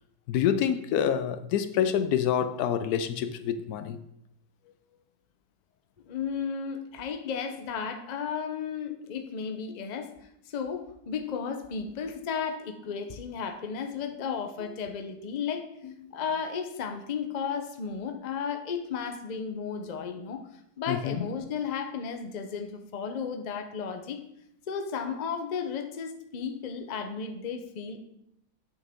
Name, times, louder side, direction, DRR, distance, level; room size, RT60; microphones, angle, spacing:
voice 1, 0.3-4.0 20.9-21.3, left 9 dB, 80° left, 1.1 m, -27 dB
voice 2, 6.0-10.1 10.5-15.7 16.1-20.4 20.8-24.2 24.7-28.0, left 6 dB, 45° left, 0.6 m, -34 dB
8.1 x 6.3 x 3.6 m
omnidirectional pair, 1.6 m